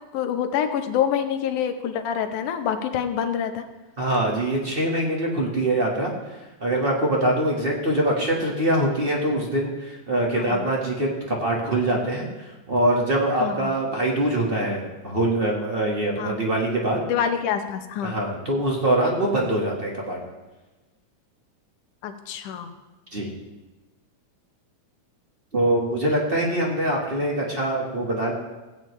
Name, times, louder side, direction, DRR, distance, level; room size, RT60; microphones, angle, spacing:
voice 1, 0.1-3.6 10.4-10.7 13.4-13.7 16.2-16.4 17.0-18.1 22.0-22.7, left 8 dB, 85° left, 7 dB, 2.4 m, -26 dB
voice 2, 4.0-6.1 6.6-17.0 18.0-20.2 23.1-23.3 25.5-28.3, right 1 dB, 30° right, -2 dB, 1.0 m, -23 dB
17.0 x 9.0 x 3.2 m, 1.2 s
omnidirectional pair, 3.5 m